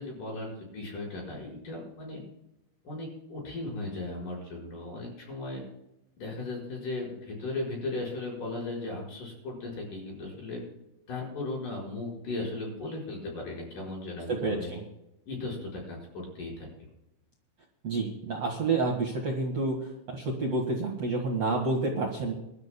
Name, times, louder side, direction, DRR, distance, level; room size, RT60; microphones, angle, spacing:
voice 1, 0.0-2.2 2.8-5.6 6.2-10.6 11.1-14.7 15.3-16.7, left 2 dB, 40° left, -3 dB, 6.4 m, -37 dB
voice 2, 14.3-14.8 17.8-22.3, right 3 dB, 65° right, -2 dB, 1.6 m, -29 dB
26.0 x 13.0 x 2.3 m, 0.87 s
omnidirectional pair, 5.9 m